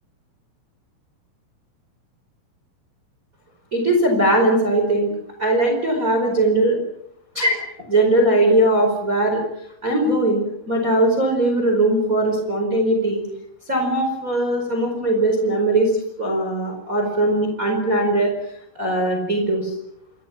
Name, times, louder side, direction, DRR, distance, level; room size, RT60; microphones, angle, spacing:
voice 1, 3.7-5.1 5.4-6.8 7.3-7.6 7.9-9.4 9.8-13.2 13.7-15.9 16.2-18.3 18.7-19.7, right 1 dB, 15° right, 3 dB, 4.7 m, -19 dB
29.0 x 26.0 x 6.0 m, 0.76 s
omnidirectional pair, 5.9 m